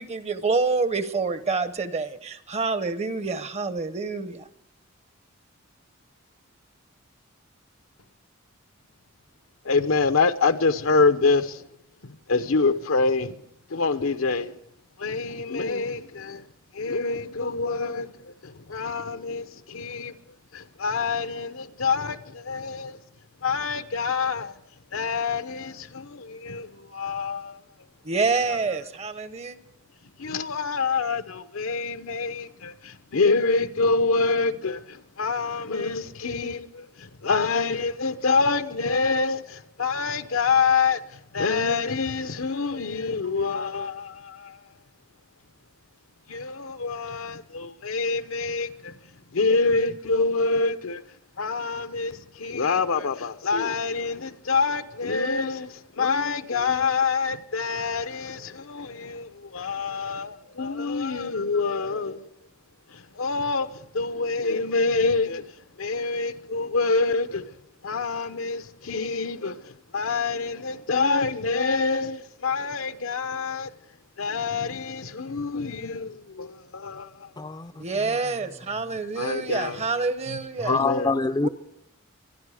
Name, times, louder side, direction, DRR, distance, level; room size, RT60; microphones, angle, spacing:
voice 1, 0.0-4.5 28.0-29.6 77.8-80.8 81.4-81.5, right 4 dB, 30° right, 0.8 m, -27 dB
voice 2, 9.6-11.6 12.0-13.4 13.7-14.5 15.0-16.4 16.7-20.1 20.5-23.0 23.4-24.5 24.9-27.6 28.5-28.6 30.2-44.6 46.3-48.9 49.3-51.0 51.4-62.2 62.9-65.5 65.8-67.5 67.8-73.7 74.2-77.3 79.1-79.8 80.6-81.1, left 4 dB, 80° left, 0.9 m, -26 dB
voice 3, 77.4-77.8 80.6-81.5, left 3 dB, 20° left, 0.5 m, -25 dB
25.5 x 10.5 x 4.9 m
head